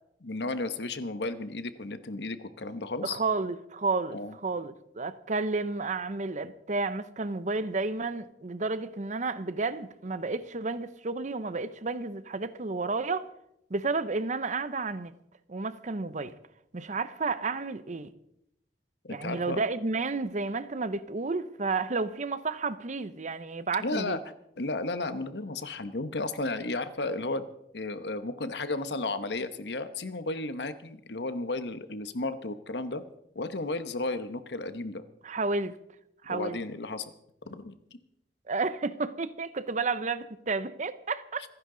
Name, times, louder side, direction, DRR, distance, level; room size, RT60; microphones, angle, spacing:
voice 1, 0.2-3.2 4.1-4.3 19.0-19.6 23.8-24.2 24.6-27.5 27.7-33.0 33.3-35.0 36.3-37.1 37.4-37.7, left 2 dB, 75° left, 1.1 m, -33 dB
voice 2, 3.0-13.3 13.7-15.1 15.5-16.3 16.7-18.1 19.1-24.2 35.2-35.8 36.2-36.6 38.5-41.5, right 3 dB, 45° right, 0.8 m, -31 dB
27.0 x 10.5 x 3.9 m
head